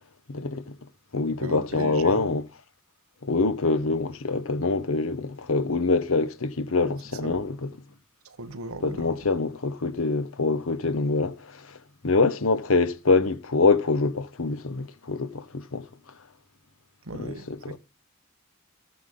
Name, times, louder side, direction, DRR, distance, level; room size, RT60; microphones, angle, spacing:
voice 1, 0.3-0.7 1.1-2.5 3.2-7.7 8.8-11.8 12.0-15.9 17.1-17.8, left 3 dB, 75° left, 1.1 m, -25 dB
voice 2, 1.4-2.3 6.8-6.9 7.2-7.4 8.2-9.2 17.0-17.8, right 2 dB, 90° right, 1.3 m, -38 dB
14.0 x 9.0 x 3.7 m
head